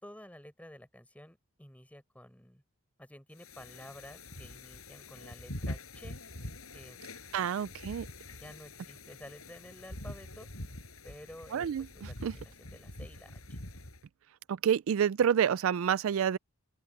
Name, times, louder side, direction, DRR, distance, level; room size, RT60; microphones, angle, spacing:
voice 1, 0.0-2.6 3.0-6.2 6.7-7.0 8.3-10.5 11.0-13.6, left 1 dB, 5° left, 4.6 m, -51 dB
sound 1, 3.4-14.1, left 1 dB, 75° left, 7.2 m, -45 dB
voice 2, 7.3-8.1 11.5-11.8 12.2-12.3 14.5-16.4, right 8 dB, 65° right, 0.3 m, -28 dB
open air
head